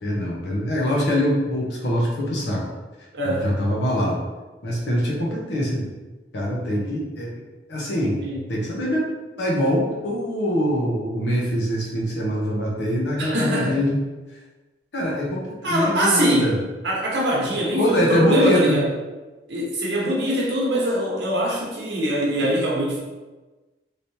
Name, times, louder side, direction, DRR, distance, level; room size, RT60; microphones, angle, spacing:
voice 1, 0.0-2.6 3.2-4.2 4.6-5.9 6.3-7.3 7.7-9.0 9.4-14.0 14.9-16.6 17.8-18.8 20.0-20.1, equal, 70° left, -3 dB, 0.9 m, -23 dB
voice 2, 3.1-3.4 8.2-8.4 13.2-13.8 15.6-16.6 16.8-18.9 19.5-23.0, right 1 dB, 70° right, -4 dB, 1.0 m, -23 dB
3.3 x 2.9 x 2.7 m, 1.2 s
head